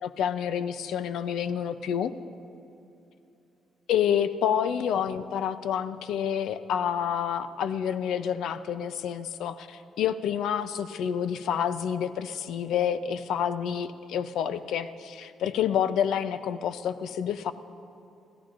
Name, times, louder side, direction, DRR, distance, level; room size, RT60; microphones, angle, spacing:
voice 1, 0.0-2.1 3.9-17.5, left 8 dB, 80° left, 12 dB, 0.5 m, -28 dB
27.0 x 16.0 x 2.6 m, 2.7 s
cardioid pair, 90°, 0 cm